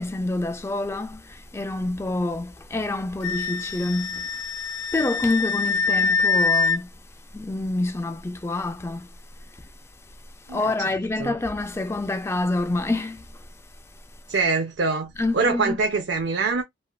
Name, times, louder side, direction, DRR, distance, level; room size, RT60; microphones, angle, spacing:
voice 1, 0.0-4.3 4.9-6.9 7.3-9.1 10.5-13.2 15.2-15.8, left 2 dB, 15° left, 0.3 m, -27 dB
Wind instrument woodwind instrument, 3.2-6.8, left 4 dB, 75° left, 0.6 m, -24 dB
voice 2, 10.5-10.9 11.2-11.3 14.3-16.6, right 4 dB, 70° right, 0.5 m, -24 dB
3.2 x 2.4 x 2.3 m
head